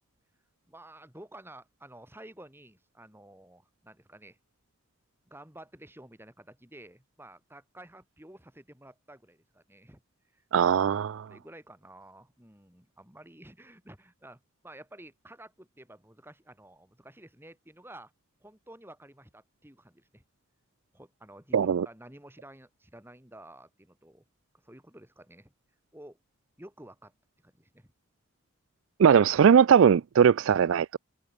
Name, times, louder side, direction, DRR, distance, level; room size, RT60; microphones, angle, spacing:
voice 1, 0.7-4.4 5.2-10.0 10.3-10.4 11.2-18.1 18.4-20.2 20.9-24.2 24.6-25.5 25.9-26.2 26.6-27.1 27.4-27.9, right 1 dB, 10° right, 3.3 m, -51 dB
voice 2, 10.5-11.3 21.5-21.9 29.0-31.0, right 7 dB, 70° right, 0.3 m, -20 dB
head